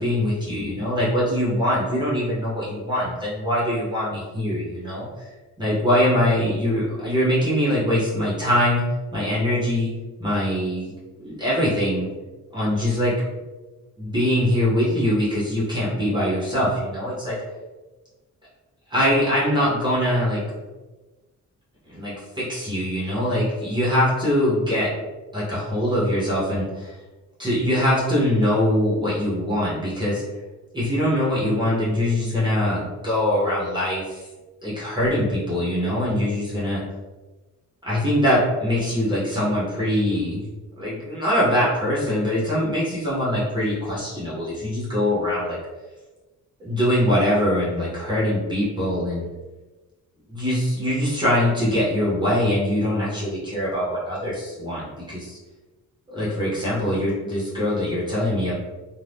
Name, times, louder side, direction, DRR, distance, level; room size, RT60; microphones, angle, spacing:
voice 1, 0.0-5.3 5.6-9.9 10.2-10.9 11.2-12.1 12.5-13.2 14.0-17.4 18.9-20.4 21.9-24.9 25.3-27.0 27.4-30.2 30.7-34.2 34.6-36.8 37.8-40.4 40.8-45.6 46.6-49.3 50.3-55.4 56.1-58.5, left 1 dB, 15° right, -8 dB, 0.8 m, -23 dB
2.6 x 2.1 x 3.3 m, 1.2 s
wide cardioid pair, 160°, 31 cm